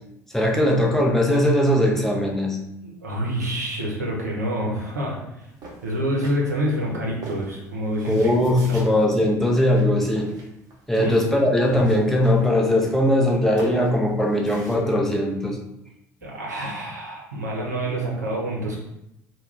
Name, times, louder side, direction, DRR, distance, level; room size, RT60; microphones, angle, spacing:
voice 1, 0.3-2.6 8.1-10.3 10.9-15.6, left 1 dB, 5° left, -1 dB, 0.6 m, -20 dB
voice 2, 2.8-5.5 5.8-8.3 11.0-11.1 16.2-18.8, equal, 90° right, -3 dB, 0.6 m, -27 dB
sound 1, 5.6-6.8 7.2-9.0 9.7-9.9 10.2-11.3 11.6-12.6 12.9-14.7, right 3 dB, 45° right, 0.8 m, -39 dB
2.3 x 2.2 x 3.2 m, 0.84 s
hypercardioid pair, 65°, 9 cm